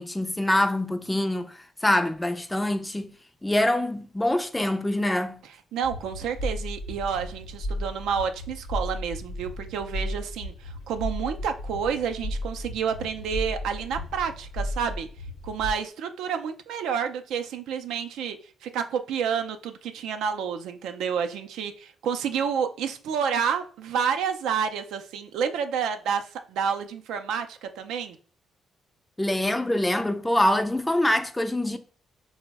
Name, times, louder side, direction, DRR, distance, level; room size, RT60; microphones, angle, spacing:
voice 1, 0.0-3.1 3.4-5.4 29.2-31.8, left 1 dB, 10° left, 0.3 m, -25 dB
voice 2, 5.7-15.1 15.4-28.2, right 7 dB, 85° right, 0.3 m, -29 dB
sound 1, 5.8-15.7, left 1 dB, 90° left, 0.7 m, -34 dB
3.9 x 2.0 x 3.3 m
cardioid pair, 90°, 0 cm